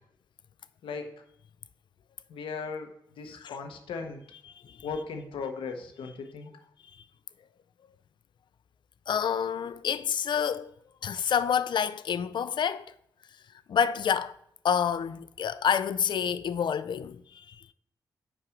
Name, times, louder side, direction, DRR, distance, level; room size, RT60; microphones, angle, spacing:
voice 1, 0.8-1.1 2.3-4.2 4.8-6.5, left 5 dB, 80° left, 0.9 m, -37 dB
voice 2, 9.1-10.7 11.0-12.9 13.7-14.4 14.6-17.6, left 8 dB, 65° left, 0.4 m, -28 dB
6.0 x 4.6 x 6.3 m
supercardioid pair, 40°, 9 cm